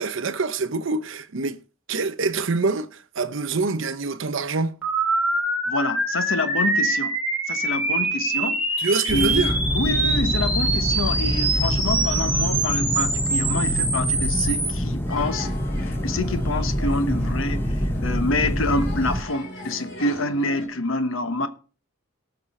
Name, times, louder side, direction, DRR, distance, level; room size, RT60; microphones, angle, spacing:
voice 1, 0.0-1.6 1.9-4.7 8.8-9.6, right 4 dB, 65° right, 0.7 m, -25 dB
sound 1, 4.8-14.7, right 2 dB, 10° right, 2.9 m, -24 dB
voice 2, 5.7-7.2 7.5-8.6 9.1-9.4 9.7-15.5 15.8-21.5, left 2 dB, 70° left, 1.1 m, -27 dB
sound 2, 9.1-19.2, equal, 10° left, 0.8 m, -26 dB
sound 3, 15.0-20.7, equal, 55° left, 3.1 m, -39 dB
18.0 x 6.0 x 4.2 m
head